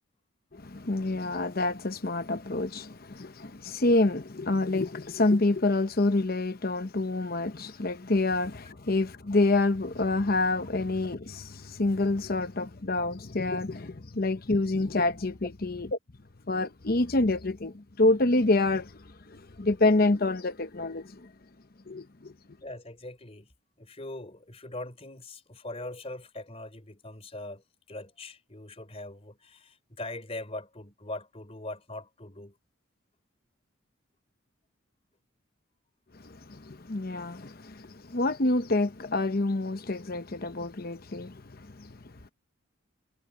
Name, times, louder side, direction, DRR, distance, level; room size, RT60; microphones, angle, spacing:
voice 1, 0.5-15.9 16.5-21.3 21.9-22.3 36.1-42.0, left 2 dB, 45° left, 0.9 m, -27 dB
voice 2, 22.6-23.5 23.8-32.6, left 2 dB, 30° left, 3.7 m, -41 dB
head